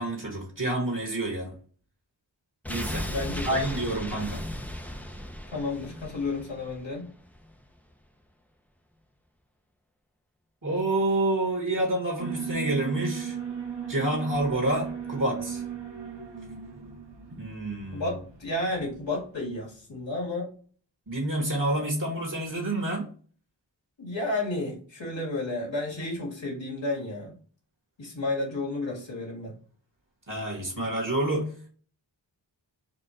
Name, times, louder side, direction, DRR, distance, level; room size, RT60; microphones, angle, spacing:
voice 1, 0.0-1.6 2.7-3.1 3.5-4.5 10.6-13.4 13.9-15.6 17.3-18.2 21.1-23.1 30.3-31.5, right 1 dB, 45° right, 0 dB, 1.6 m, -28 dB
sound 1, 2.6-7.6 7.9-8.0, equal, 5° left, 0.7 m, -36 dB
voice 2, 3.1-3.6 5.5-7.1 17.9-20.5 24.0-27.3 28.0-29.6, left 2 dB, 85° left, -3 dB, 2.0 m, -32 dB
Alarm, 12.2-19.3, right 8 dB, 70° right, 1.1 m, -37 dB
4.4 x 2.5 x 4.3 m, 0.43 s
cardioid pair, 40°, 44 cm